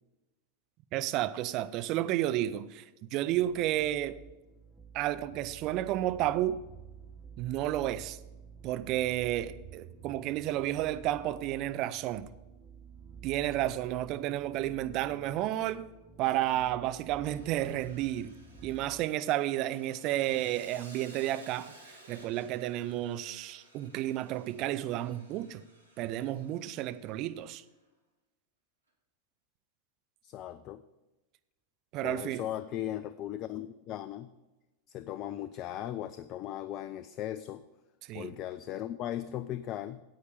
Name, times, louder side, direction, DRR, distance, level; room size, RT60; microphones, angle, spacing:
voice 1, 0.9-4.2 4.9-6.6 7.4-8.2 8.6-12.3 13.2-15.9 16.2-18.3 18.6-25.6 26.0-27.6 31.9-32.4 38.1-38.3, right 13 dB, 40° right, 0.5 m, -31 dB
sound 1, 3.3-19.1, right 5 dB, 10° right, 1.1 m, -51 dB
Sawing, 17.2-27.5, right 1 dB, 85° right, 2.0 m, -56 dB
voice 2, 30.2-30.8 32.0-34.3 34.9-37.6 38.1-40.0, left 12 dB, 35° left, 0.4 m, -38 dB
9.6 x 8.3 x 5.0 m
figure-of-eight pair, 90°, 0 cm